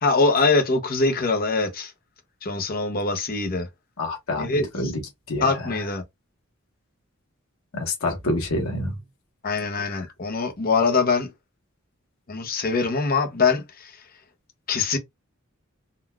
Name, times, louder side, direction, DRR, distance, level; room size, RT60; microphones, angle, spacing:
voice 1, 0.0-1.9 2.4-3.7 4.4-4.7 5.4-6.0 9.4-11.3 12.3-13.9 14.7-15.0, left 4 dB, 45° left, 0.7 m, -23 dB
voice 2, 4.0-5.0 5.3-5.5 7.7-8.9 9.8-10.0, left 1 dB, 80° left, 1.1 m, -27 dB
3.8 x 2.2 x 2.2 m
head